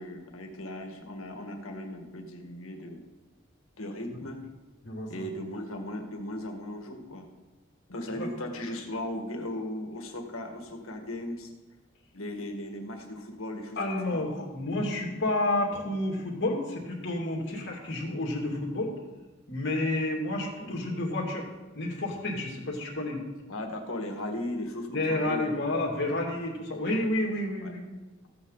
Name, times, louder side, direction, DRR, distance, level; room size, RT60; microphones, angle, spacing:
voice 1, 0.0-3.0 3.8-4.4 5.1-7.3 7.9-11.5 12.1-14.2 20.5-20.7 23.5-25.8 27.6-27.7, left 1 dB, 90° left, 4 dB, 1.7 m, -37 dB
voice 2, 4.8-5.3 8.1-8.3 13.8-18.9 19.5-21.5 21.7-23.2 24.9-27.8, left 2 dB, 55° left, 0 dB, 2.6 m, -30 dB
15.0 x 8.6 x 4.0 m, 1.2 s
head